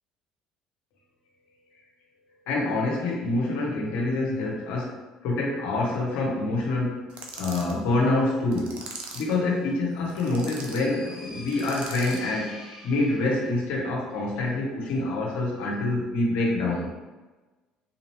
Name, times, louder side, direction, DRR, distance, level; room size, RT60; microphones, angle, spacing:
voice 1, 2.5-7.0 7.4-8.8 9.1-12.5 12.8-16.9, left 2 dB, 70° left, -2 dB, 1.0 m, -26 dB
sound 1, 7.1-7.8 8.5-9.4 10.1-10.8 11.5-12.3, right 4 dB, 60° right, 0.7 m, -41 dB
sound 2, 10.0-13.7, left 1 dB, 25° right, 1.4 m, -45 dB
3.9 x 2.8 x 3.0 m, 1.2 s
hypercardioid pair, 60°, 2 cm